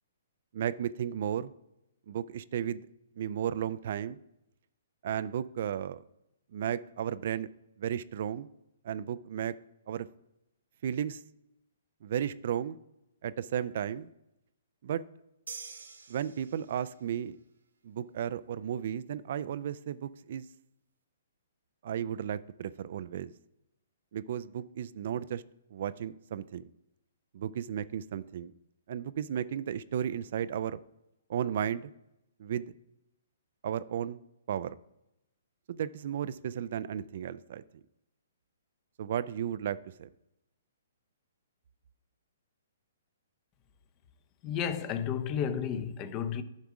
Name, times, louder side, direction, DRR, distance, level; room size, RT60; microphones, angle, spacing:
voice 1, 0.5-1.5 2.1-2.8 3.2-4.2 5.0-6.0 6.5-7.5 7.8-8.5 8.8-9.5 9.9-10.1 10.8-11.2 12.0-12.8 13.2-14.1 14.8-15.0 16.1-17.4 17.8-20.5 21.8-23.3 24.1-25.4 25.7-26.7 27.3-28.5 28.9-30.8 31.3-31.9 32.4-32.7 33.6-34.2 34.5-34.8 35.7-37.6 39.0-40.1, right 9 dB, 55° right, 0.3 m, -34 dB
sound 1, 15.5-17.0, right 5 dB, 80° right, 0.9 m, -46 dB
voice 2, 44.4-46.4, left 8 dB, 30° left, 0.7 m, -32 dB
10.5 x 3.6 x 6.0 m
figure-of-eight pair, 125°, 0 cm